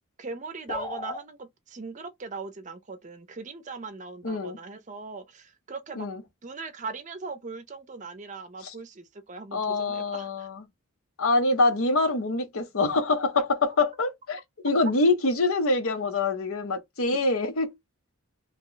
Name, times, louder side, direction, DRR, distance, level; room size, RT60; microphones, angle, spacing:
voice 1, 0.2-6.1 6.4-10.5 13.4-13.5, right 4 dB, 35° right, 0.5 m, -39 dB
sound 1, 0.7-1.2, left 2 dB, 20° left, 0.3 m, -35 dB
voice 2, 4.2-4.6 6.0-6.2 8.6-8.7 9.5-10.6 11.2-14.4 14.6-17.7, left 3 dB, 75° left, 0.8 m, -25 dB
2.9 x 2.1 x 3.8 m
head